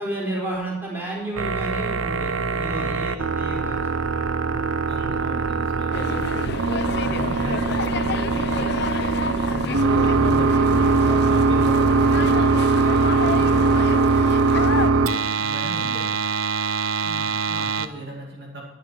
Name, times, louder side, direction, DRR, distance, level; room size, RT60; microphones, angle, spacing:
voice 1, 0.0-4.6 17.0-17.7, right 1 dB, 10° right, -4 dB, 4.2 m, -32 dB
sound 1, 1.4-17.9, right 4 dB, 85° right, 0.7 m, -21 dB
voice 2, 2.7-3.0 4.9-6.1 6.4-10.0 10.4-13.9 14.2-16.1 17.5-18.6, right 1 dB, 55° right, -3 dB, 2.5 m, -38 dB
sound 2, 5.9-14.9, left 4 dB, 55° left, 0.5 m, -30 dB
sound 3, 7.0-13.8, left 1 dB, 20° left, 2.8 m, -37 dB
10.5 x 10.5 x 4.6 m, 1.2 s
head